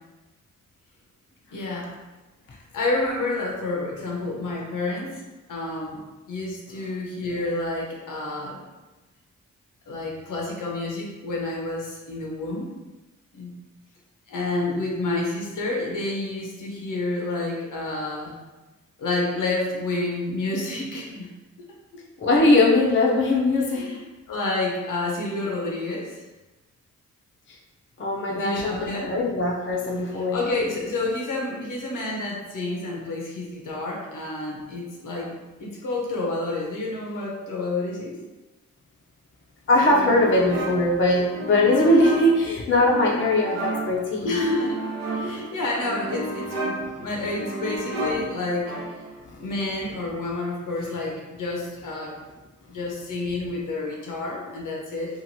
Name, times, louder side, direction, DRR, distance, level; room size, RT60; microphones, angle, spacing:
voice 1, 1.5-1.9 2.5-5.2 5.5-6.0 6.3-8.6 9.9-12.7 13.3-13.5 14.3-18.4 19.0-21.3 23.5-24.0 24.3-26.3 28.3-29.1 30.1-35.3 35.6-38.2 44.2-44.8 45.1-49.0 49.4-52.1 52.7-55.2, left 2 dB, 75° left, -2 dB, 0.8 m, -29 dB
voice 2, 22.2-23.9 28.0-30.4 39.7-44.3, left 1 dB, 35° left, -2 dB, 0.6 m, -20 dB
sound 1, 39.7-49.2, right 1 dB, 55° right, 0.7 m, -32 dB
3.0 x 2.5 x 2.7 m, 1.1 s
cardioid pair, 65°, 32 cm